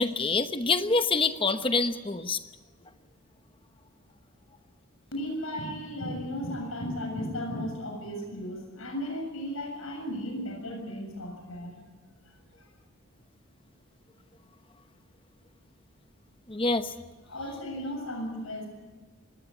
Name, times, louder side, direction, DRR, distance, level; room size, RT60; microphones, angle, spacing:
voice 1, 0.0-2.4 16.5-16.9, left 3 dB, 25° left, 10 dB, 0.9 m, -26 dB
voice 2, 5.1-11.7 17.2-18.7, equal, 75° left, 3 dB, 7.1 m, -35 dB
20.5 x 17.5 x 9.8 m, 1.3 s
head